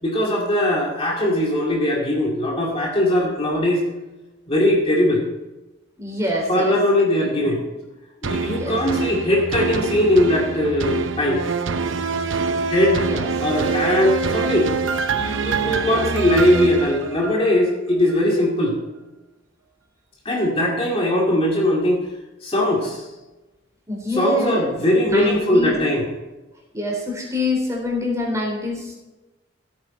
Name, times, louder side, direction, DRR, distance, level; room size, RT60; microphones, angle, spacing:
voice 1, 0.0-3.8 4.5-5.2 6.5-7.6 8.2-11.4 12.7-13.1 13.4-14.7 15.1-18.8 20.2-22.1 22.4-23.1 24.1-26.1, left 1 dB, 30° left, -2 dB, 2.4 m, -20 dB
voice 2, 6.0-6.7 7.4-7.5 8.5-8.8 13.0-13.3 23.9-24.7 25.0-25.8 26.7-28.9, left 1 dB, 15° right, -1 dB, 4.0 m, -25 dB
sound 1, 8.2-17.6 18.1-18.2, right 4 dB, 90° right, 0.8 m, -25 dB
16.0 x 8.9 x 4.4 m, 1.1 s
head